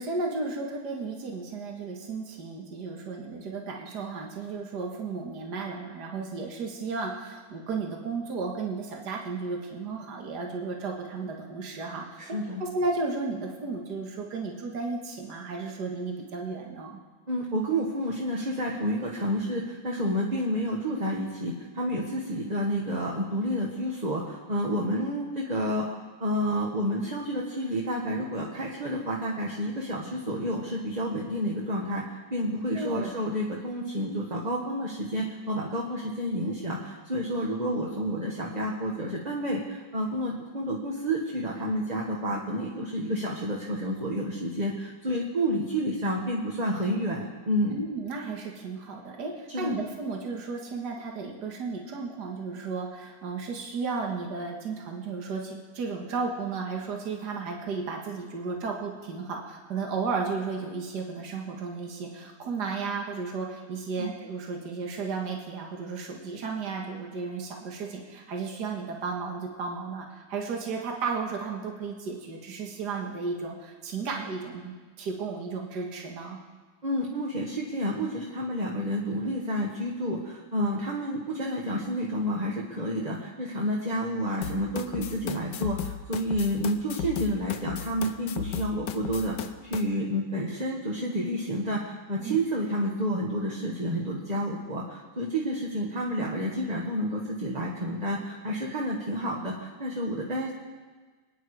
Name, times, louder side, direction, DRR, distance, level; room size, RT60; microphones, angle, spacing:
voice 1, 0.0-12.2 12.6-16.9 32.7-33.1 47.7-76.4 92.2-92.4, right 4 dB, 65° right, 1 dB, 2.2 m, -34 dB
voice 2, 12.2-12.6 17.3-25.9 26.2-47.8 49.5-49.8 63.9-64.1 76.8-100.5, equal, 25° right, -3 dB, 1.6 m, -30 dB
sound 1, 84.4-89.8, left 9 dB, 75° left, 1.5 m, -35 dB
26.0 x 9.9 x 4.9 m, 1.4 s
omnidirectional pair, 2.0 m